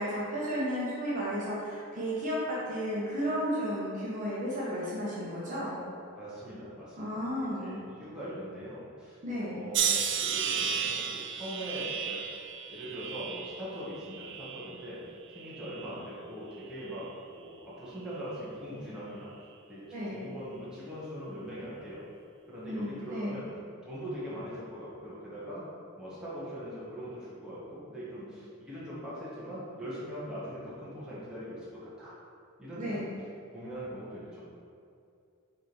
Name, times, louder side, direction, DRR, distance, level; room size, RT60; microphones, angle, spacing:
voice 1, 0.0-5.8 7.0-7.8 9.2-9.6 19.9-20.2 22.6-23.4 32.8-33.1, equal, 35° right, -8 dB, 1.2 m, -33 dB
voice 2, 6.1-12.2 12.7-15.0 15.3-17.1 17.3-19.3 19.7-22.0 22.5-23.5 23.8-25.6 26.0-32.1 32.6-33.1 33.5-34.4, equal, 5° right, -10 dB, 1.5 m, -41 dB
sound 1, 9.7-14.9 15.3-16.0 16.7-17.1, right 7 dB, 55° right, 0.4 m, -33 dB
5.7 x 3.6 x 4.7 m, 2.5 s
head